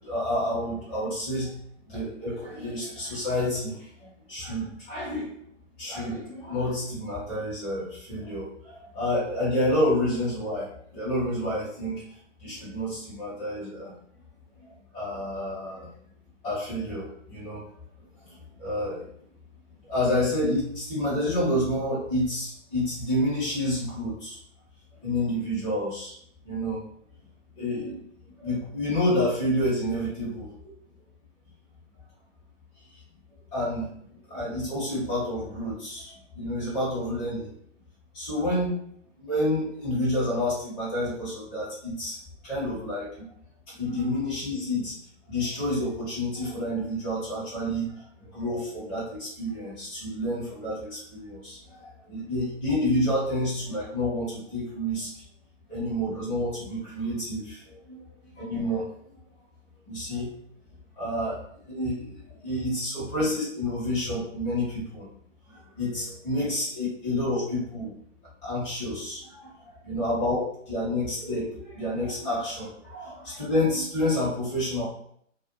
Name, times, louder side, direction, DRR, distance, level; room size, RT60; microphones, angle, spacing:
voice 1, 0.0-1.6 1.8-5.3 5.8-13.9 14.6-15.9 16.4-17.6 18.2-19.0 19.9-24.4 25.0-26.1 26.4-26.8 27.6-28.1 28.4-30.7 32.9-33.0 33.5-37.5 38.1-38.8 39.2-42.2 42.4-43.2 43.7-44.9 45.3-55.2 55.7-58.0 58.3-58.9 59.9-60.3 61.0-65.1 65.5-67.9 68.4-70.4 70.7-74.8, left 1 dB, 15° left, -9 dB, 1.1 m, -29 dB
2.5 x 2.3 x 2.6 m, 0.64 s
figure-of-eight pair, 140°, 39 cm